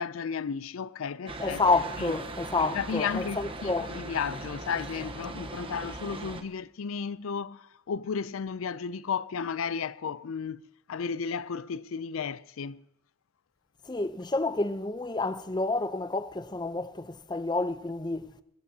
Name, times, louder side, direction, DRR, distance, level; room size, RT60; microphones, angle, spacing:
voice 1, 0.0-1.6 2.0-2.1 2.6-10.6 10.9-12.8, left 6 dB, 85° left, 0.5 m, -34 dB
sound 1, 1.3-6.4, right 2 dB, 25° right, 1.0 m, -39 dB
voice 2, 1.4-3.9 13.9-18.3, left 3 dB, 20° left, 0.7 m, -29 dB
23.0 x 14.0 x 2.8 m
head